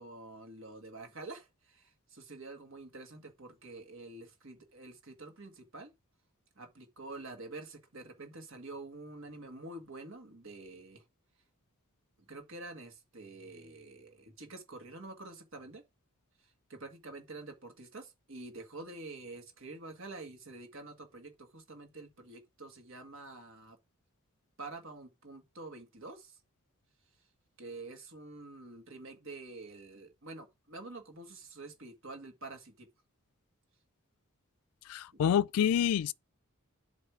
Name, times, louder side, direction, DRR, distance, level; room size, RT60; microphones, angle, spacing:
voice 1, 0.0-5.9 6.6-11.0 12.3-15.8 16.7-23.8 24.6-26.4 27.6-32.9 35.1-35.2, right 2 dB, 60° right, 1.7 m, -47 dB
voice 2, 34.9-36.1, left 9 dB, 75° left, 0.3 m, -27 dB
8.2 x 3.1 x 6.0 m
head